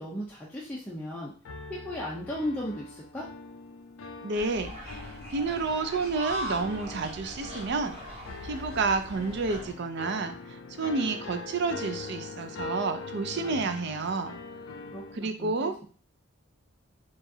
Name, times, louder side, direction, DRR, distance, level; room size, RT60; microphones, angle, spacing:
voice 1, 0.0-1.3 1.7-3.3 13.3-13.7 14.9-15.8, left 1 dB, 10° left, -6 dB, 0.6 m, -36 dB
sound 1, 1.4-15.2, left 4 dB, 70° left, 0.4 m, -42 dB
voice 2, 4.2-14.4 15.1-15.8, right 4 dB, 60° right, 8 dB, 0.5 m, -30 dB
sound 2, 4.3-9.7, equal, 30° right, 1.4 m, -40 dB
4.7 x 2.5 x 2.7 m, 0.40 s
head